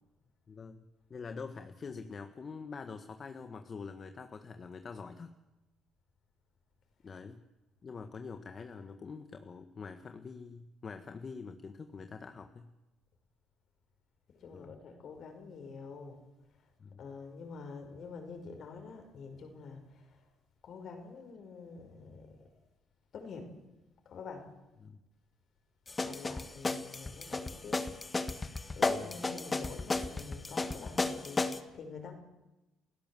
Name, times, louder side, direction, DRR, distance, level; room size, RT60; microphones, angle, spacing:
voice 1, 0.5-5.3 7.0-7.4 7.8-12.7 14.5-14.8 16.8-17.0 24.8-25.0 28.8-29.2, left 5 dB, 40° left, 8 dB, 1.5 m, -45 dB
voice 2, 14.3-16.2 17.0-20.1 20.6-22.3 23.1-23.5 24.1-24.5 26.0-27.8 28.8-32.1, left 4 dB, 60° left, 6 dB, 5.2 m, -46 dB
sound 1, 25.9-31.6, left 3 dB, 25° left, 1.7 m, -33 dB
29.0 x 16.0 x 7.6 m, 1.0 s
supercardioid pair, 85°, 0 cm